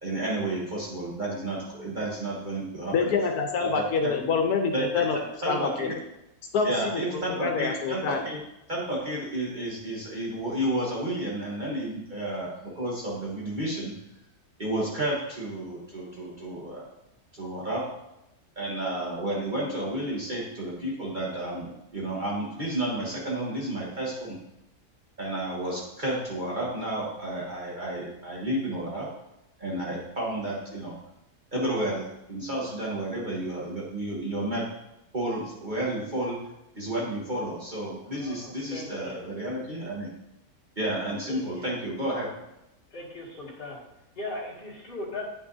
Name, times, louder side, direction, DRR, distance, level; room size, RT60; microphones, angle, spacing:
voice 1, 0.0-3.1 3.6-4.1 4.7-5.0 5.4-5.9 6.6-8.4 8.7-13.9 14.6-16.9 17.3-17.9 18.6-24.4 25.2-29.1 29.6-30.9 31.5-34.7 35.1-36.4 36.7-40.1 40.8-42.3, right 1 dB, 35° right, -5 dB, 1.3 m, -31 dB
voice 2, 2.9-5.2 5.5-5.9 6.5-8.2, left 5 dB, 90° left, 3 dB, 1.3 m, -26 dB
voice 3, 38.1-39.3 40.8-40.9 41.3-41.7 42.9-43.8 44.2-45.2, left 2 dB, 40° left, -6 dB, 2.1 m, -39 dB
9.5 x 6.0 x 2.7 m, 0.89 s
omnidirectional pair, 1.6 m